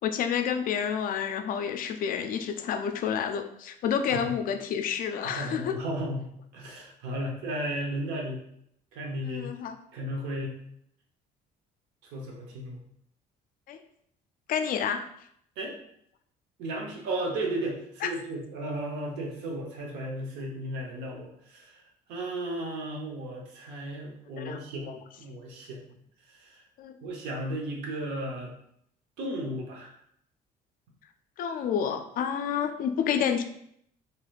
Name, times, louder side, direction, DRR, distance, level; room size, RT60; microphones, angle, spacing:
voice 1, 0.0-5.8 9.2-9.8 13.7-13.8 14.5-15.1 18.0-18.1 24.4-24.6 24.9-25.0 26.8-27.0 31.4-33.4, left 7 dB, 55° left, 8 dB, 0.4 m, -29 dB
voice 2, 5.2-6.3 6.5-8.4 8.9-9.5 9.9-10.5 12.1-12.8 15.6-15.7 16.6-21.8 22.1-24.9 25.2-25.8 26.4-26.6 27.0-28.5 29.2-29.9, right 1 dB, 90° right, 0 dB, 0.9 m, -34 dB
3.2 x 2.9 x 2.4 m, 0.71 s
cardioid pair, 110°, 17 cm